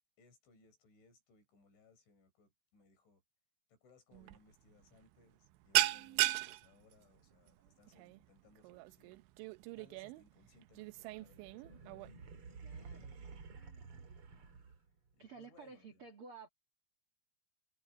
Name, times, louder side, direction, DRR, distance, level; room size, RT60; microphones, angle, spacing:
voice 1, 0.2-3.2 3.7-9.2 9.8-11.9 14.2-14.7 15.1-16.1, left 3 dB, 80° left, 8.3 m, -67 dB
sound 1, 4.1-4.4 4.7-5.0 5.2-12.1, right 18 dB, 85° right, 3.1 m, -36 dB
sound 2, 10.8-15.1, right 4 dB, 40° right, 2.4 m, -52 dB
voice 2, 12.6-13.3 13.6-14.1 15.2-16.5, right 4 dB, 55° right, 1.5 m, -55 dB
omnidirectional pair, 5.3 m